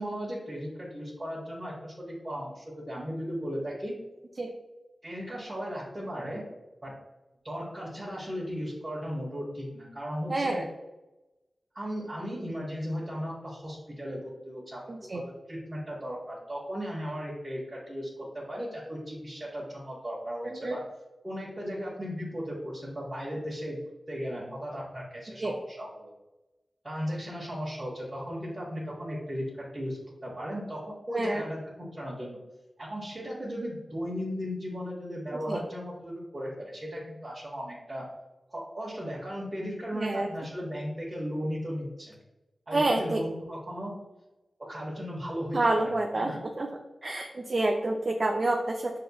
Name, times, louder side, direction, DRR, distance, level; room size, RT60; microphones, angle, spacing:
voice 1, 0.0-3.9 5.0-6.4 6.8-6.9 7.4-10.6 11.7-15.2 15.5-18.1 18.3-20.8 21.2-23.8 24.1-26.1 26.8-30.8 31.1-31.6 31.9-32.4 32.8-38.0 38.5-42.2 42.7-43.9 44.7-46.4, equal, 25° right, -8 dB, 1.2 m, -36 dB
voice 2, 10.3-10.6 14.9-15.2 20.4-20.8 25.4-25.6 31.1-31.4 35.5-35.7 39.9-40.3 42.7-43.2 45.5-46.7 47.0-49.0, right 2 dB, 45° right, 1 dB, 0.4 m, -28 dB
6.5 x 2.8 x 2.3 m, 1.0 s
wide cardioid pair, 80°, 0 cm